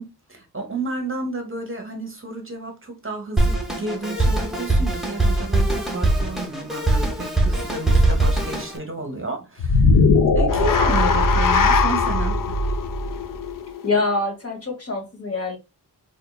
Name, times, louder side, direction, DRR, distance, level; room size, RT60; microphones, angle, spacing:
voice 1, 0.0-9.9 10.3-12.6, right 3 dB, 30° right, 1.0 m, -31 dB
Drum kit, 3.4-8.8, right 2 dB, ahead, 1.0 m, -21 dB
sound 1, 9.6-14.0, left 3 dB, 55° left, 0.5 m, -19 dB
voice 2, 13.8-15.6, left 3 dB, 35° left, 1.2 m, -25 dB
4.5 x 2.6 x 2.3 m
wide cardioid pair, 120°, 40 cm